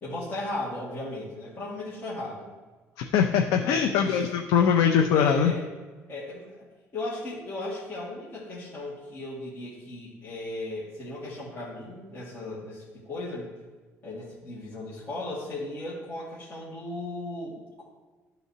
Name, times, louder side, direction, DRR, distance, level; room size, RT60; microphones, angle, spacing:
voice 1, 0.0-2.5 3.5-4.1 5.1-5.6 6.1-6.7 6.9-13.5 14.0-17.8, left 2 dB, 35° left, -9 dB, 2.0 m, -36 dB
voice 2, 3.0-5.5, left 7 dB, 85° left, 4 dB, 0.5 m, -22 dB
12.0 x 4.0 x 2.7 m, 1.3 s
cardioid pair, 145°, 6 cm